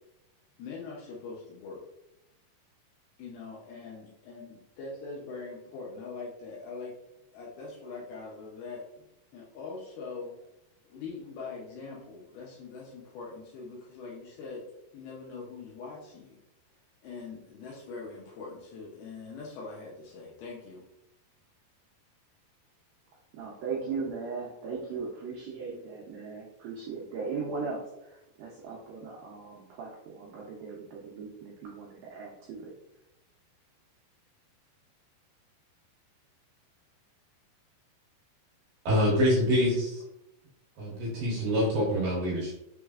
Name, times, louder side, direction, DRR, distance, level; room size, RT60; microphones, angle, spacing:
voice 1, 0.6-1.8 3.2-6.9 7.3-9.0 9.3-10.3 10.9-14.7 14.9-16.4 17.0-20.8, left 4 dB, 80° left, -4 dB, 2.3 m, -42 dB
voice 2, 23.3-32.7, right 4 dB, 85° right, -3 dB, 2.0 m, -38 dB
voice 3, 38.9-40.0 40.8-42.5, equal, 65° right, -5 dB, 2.4 m, -26 dB
6.2 x 3.2 x 2.4 m, 0.87 s
omnidirectional pair, 5.0 m